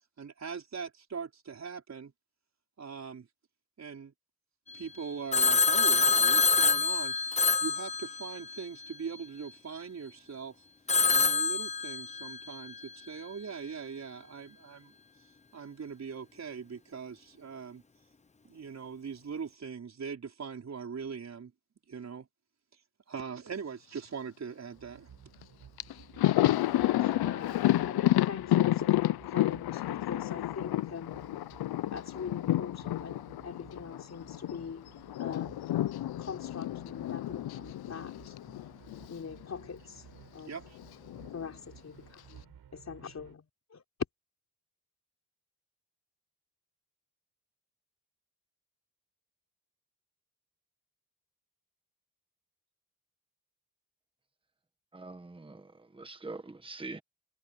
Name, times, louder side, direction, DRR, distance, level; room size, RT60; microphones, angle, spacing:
voice 1, 0.2-2.1 2.8-3.3 3.8-4.1 4.7-10.6 11.1-14.9 15.5-17.8 18.4-21.5 21.9-22.3 23.1-25.1 40.4-40.8, right 6 dB, 45° right, 5.0 m, -41 dB
Telephone, 5.3-8.6 10.9-12.4, left 4 dB, 20° left, 0.8 m, -26 dB
sound 1, 24.7-43.3, right 9 dB, 90° right, 4.8 m, -56 dB
Thunder, 25.4-25.5 25.8-34.6 34.9-39.2 39.4-39.6 40.8-41.5, left 15 dB, 85° left, 0.5 m, -30 dB
voice 2, 26.8-31.1 31.9-34.8 35.2-35.6 36.2-38.4 39.1-40.1 40.3-40.6 41.3-43.8, left 6 dB, 45° left, 4.2 m, -43 dB
voice 3, 54.9-57.0, right 3 dB, 15° right, 1.4 m, -44 dB
wide cardioid pair, 170°, 37 cm